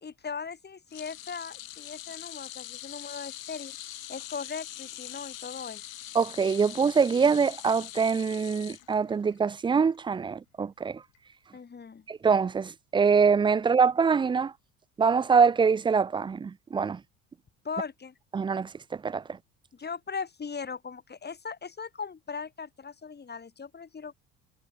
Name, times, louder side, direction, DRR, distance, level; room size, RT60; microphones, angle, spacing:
voice 1, 0.0-3.8 4.1-5.9 11.5-12.0 17.6-18.1 19.7-24.1, left 5 dB, 25° left, 2.7 m, -39 dB
sound 1, 0.9-9.4 9.7-10.0 11.1-11.2, left 13 dB, 80° left, 3.0 m, -43 dB
voice 2, 6.1-11.0 12.1-14.5 15.0-17.0 18.3-18.7 19.0-19.2, right 5 dB, 15° right, 0.4 m, -24 dB
hypercardioid pair, 65°, 40 cm